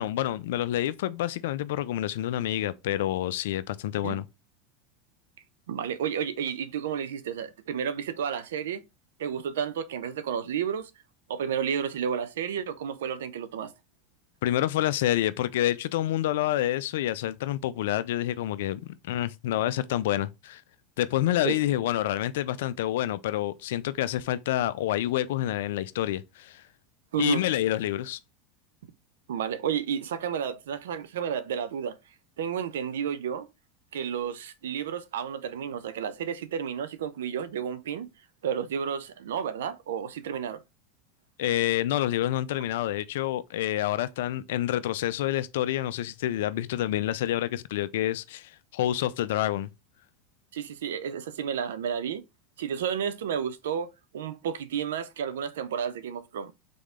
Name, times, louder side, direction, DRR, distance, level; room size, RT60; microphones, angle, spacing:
voice 1, 0.0-4.3 14.4-20.6 21.0-26.6 27.2-28.2 41.4-49.7, left 13 dB, 75° left, 0.4 m, -28 dB
voice 2, 5.7-8.8 9.2-10.9 11.3-13.7 21.4-21.6 27.1-27.4 29.3-32.0 32.4-33.5 33.9-38.1 38.4-40.6 50.5-52.2 52.6-56.5, right 8 dB, 80° right, 0.5 m, -31 dB
3.7 x 3.6 x 3.6 m
hypercardioid pair, 100°, 0 cm